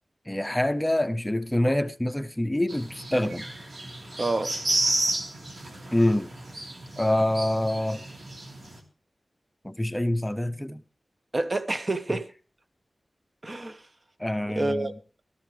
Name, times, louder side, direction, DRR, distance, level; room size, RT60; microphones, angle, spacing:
voice 1, 0.3-3.5 5.9-6.3 7.0-8.0 9.6-10.8 14.2-14.9, left 1 dB, 10° left, 0.7 m, -26 dB
sound 1, 2.7-8.8, right 2 dB, 60° right, 3.1 m, -32 dB
voice 2, 4.2-4.5 11.3-12.3 13.4-13.8 14.5-14.9, right 2 dB, 40° right, 1.1 m, -28 dB
17.5 x 13.5 x 3.3 m
wide cardioid pair, 65°, 0 cm